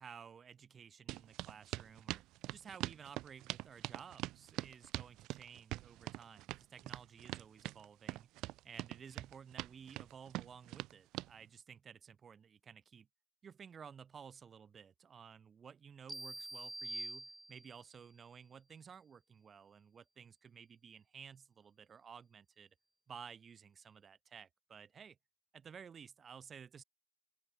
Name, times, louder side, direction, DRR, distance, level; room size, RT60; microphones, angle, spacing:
voice 1, 0.0-2.2 2.5-8.3 8.6-13.1 13.4-22.7 23.1-25.2 25.5-26.8, right 7 dB, 25° right, 4.5 m, -54 dB
sound 1, 1.1-11.3, right 18 dB, 40° right, 0.4 m, -43 dB
sound 2, 16.1-17.9, right 1 dB, 5° right, 1.0 m, -45 dB
open air
figure-of-eight pair, 90°, 0 cm